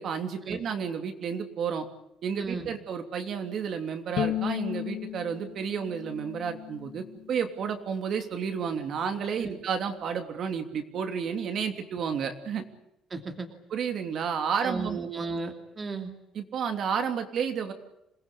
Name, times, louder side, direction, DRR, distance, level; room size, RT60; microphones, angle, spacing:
voice 1, 0.0-1.9 2.2-12.6 13.7-15.0 16.3-17.7, right 7 dB, 50° right, 6 dB, 3.1 m, -31 dB
voice 2, 2.4-2.7 9.4-9.6 13.1-13.5 14.6-16.1, right 3 dB, 25° right, 4 dB, 2.7 m, -35 dB
Bowed string instrument, 4.2-7.4, left 12 dB, 55° left, 1.2 m, -34 dB
27.5 x 20.0 x 8.7 m, 0.83 s
cardioid pair, 160°, 0 cm